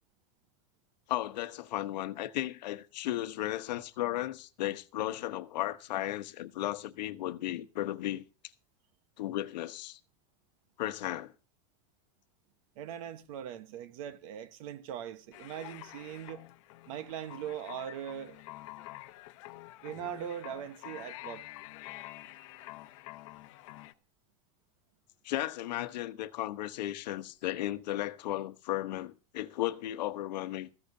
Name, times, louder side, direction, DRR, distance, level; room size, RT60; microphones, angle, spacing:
voice 1, 1.1-8.2 9.2-10.0 10.8-11.3 25.2-30.7, left 14 dB, 90° left, 1.1 m, -35 dB
voice 2, 12.7-16.5 16.9-18.4 19.8-21.5, right 9 dB, 55° right, 1.2 m, -40 dB
sound 1, 15.3-23.9, left 18 dB, 50° left, 0.9 m, -48 dB
15.5 x 14.5 x 2.7 m
supercardioid pair, 175°, 21 cm